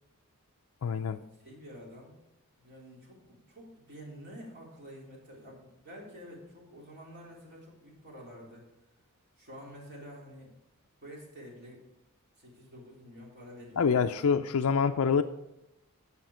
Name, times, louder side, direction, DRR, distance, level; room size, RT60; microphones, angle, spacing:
voice 1, 0.8-1.2 13.8-15.2, left 6 dB, 65° left, 5 dB, 0.4 m, -26 dB
voice 2, 1.4-2.2 2.6-8.6 9.4-10.5 11.0-11.8 12.4-14.2, equal, 50° right, -3 dB, 3.7 m, -49 dB
10.5 x 7.3 x 5.0 m, 0.92 s
head